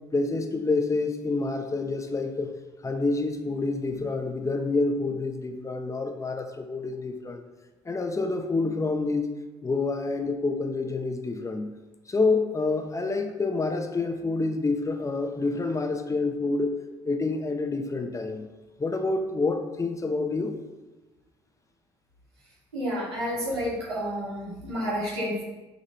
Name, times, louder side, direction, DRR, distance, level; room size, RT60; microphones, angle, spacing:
voice 1, 0.1-2.5 2.8-7.4 7.9-9.3 9.6-11.7 12.1-16.8 17.0-18.4 18.8-20.5, left 3 dB, 25° left, 5 dB, 1.0 m, -27 dB
voice 2, 22.7-25.4, equal, 85° right, -6 dB, 2.5 m, -30 dB
8.3 x 4.1 x 4.5 m, 1.1 s
hypercardioid pair, 55°, 13 cm